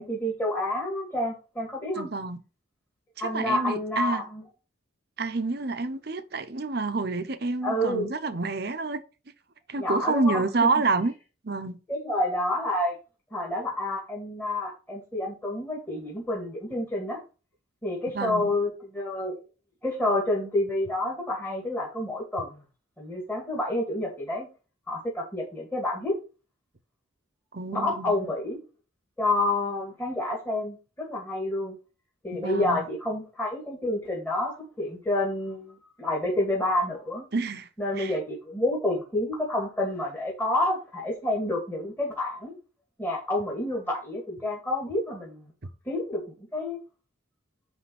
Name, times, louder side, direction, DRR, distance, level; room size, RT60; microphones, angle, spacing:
voice 1, 0.0-2.1 3.2-4.4 7.6-8.1 9.8-10.8 11.9-12.9 13.3-17.2 17.8-19.4 19.8-22.6 23.0-24.5 24.9-26.2 27.7-28.6 29.2-31.8 32.2-37.3 37.8-42.5 43.0-45.5 45.9-46.2 46.5-46.8, left 1 dB, 10° left, 2.3 m, -29 dB
voice 2, 1.9-2.4 3.2-4.2 5.2-9.0 9.7-11.1 11.4-11.8 18.1-18.5 27.5-28.2 32.3-32.9 37.3-37.7 38.0-38.1, right 3 dB, 55° right, 0.9 m, -28 dB
9.6 x 3.6 x 5.4 m
head